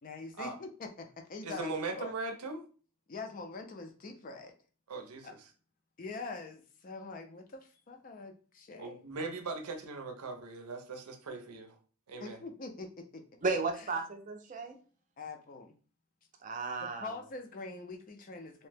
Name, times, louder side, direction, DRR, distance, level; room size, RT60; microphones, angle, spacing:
voice 1, 0.0-2.1 3.1-4.5 5.2-5.3 6.0-9.1 12.2-13.9 15.2-15.7 16.8-18.7, left 3 dB, 40° left, 5 dB, 0.4 m, -44 dB
voice 2, 1.4-2.6 4.9-5.4 8.8-11.8 12.1-12.4, right 3 dB, 85° right, 5 dB, 0.6 m, -39 dB
voice 3, 13.4-14.8 16.4-17.1, right 3 dB, 35° right, 5 dB, 0.4 m, -34 dB
2.7 x 2.1 x 3.3 m, 0.39 s
head